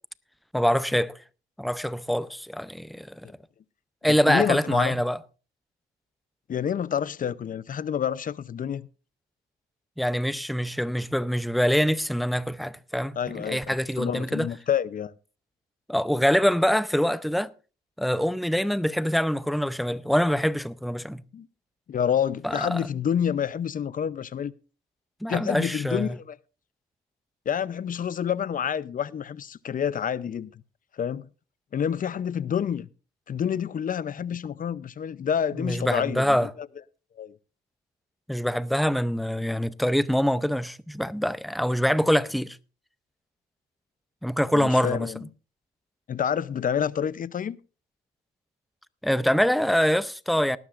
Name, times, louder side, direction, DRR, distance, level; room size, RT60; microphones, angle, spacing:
voice 1, 0.5-1.2 1.6-3.2 4.0-5.2 10.0-14.5 15.9-17.5 18.0-21.2 22.4-22.8 25.2-26.1 35.6-36.5 38.3-42.6 44.2-45.1 49.0-50.6, equal, ahead, 0.6 m, -24 dB
voice 2, 4.1-5.0 6.5-8.9 13.2-15.1 21.3-21.5 21.9-24.5 25.3-26.4 27.5-30.6 30.9-31.3 31.7-32.9 33.3-36.7 37.2-37.4 44.5-45.3 46.1-47.6, left 8 dB, 45° left, 0.6 m, -28 dB
19.0 x 12.0 x 2.5 m
cardioid pair, 90°, 20 cm